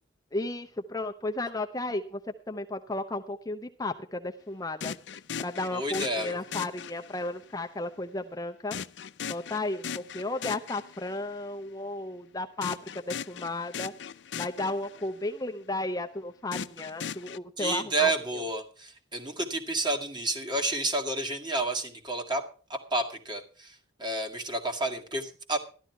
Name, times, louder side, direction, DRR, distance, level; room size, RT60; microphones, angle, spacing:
voice 1, 0.3-2.2 2.5-4.9 5.4-8.8 9.3-13.9 14.3-18.1, left 2 dB, 20° left, 5 dB, 0.7 m, -34 dB
sound 1, 4.8-7.4 8.7-11.3 12.6-15.3 16.5-17.4, left 7 dB, 75° left, 0.5 m, -38 dB
voice 2, 5.7-6.4 17.6-25.6, right 2 dB, 25° right, 3 dB, 2.1 m, -30 dB
13.0 x 12.0 x 4.6 m, 0.39 s
head